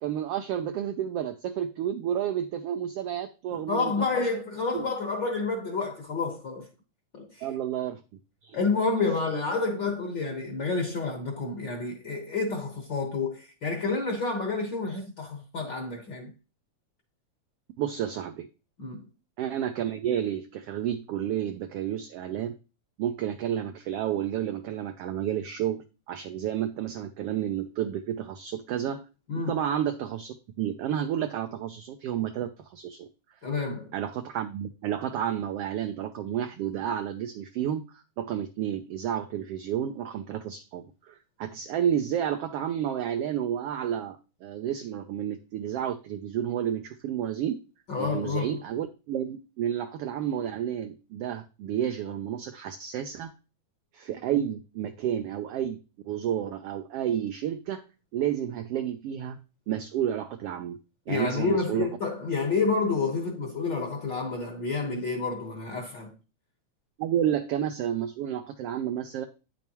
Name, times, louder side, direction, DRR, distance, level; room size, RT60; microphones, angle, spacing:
voice 1, 0.0-4.2 4.7-4.9 7.4-8.0 8.4-8.6 17.8-18.5 19.4-22.5 23.0-29.0 29.3-33.1 33.9-47.6 48.0-53.3 53.9-55.8 56.0-57.8 58.1-59.4 59.7-60.8 61.1-61.9 67.0-69.3, right 10 dB, 75° right, 1.4 m, -31 dB
voice 2, 3.5-6.7 7.1-7.5 8.5-16.3 18.8-19.1 29.3-29.6 33.4-33.9 47.9-48.6 61.1-66.1, left 4 dB, 50° left, 1.6 m, -29 dB
9.4 x 7.1 x 3.0 m
omnidirectional pair, 3.3 m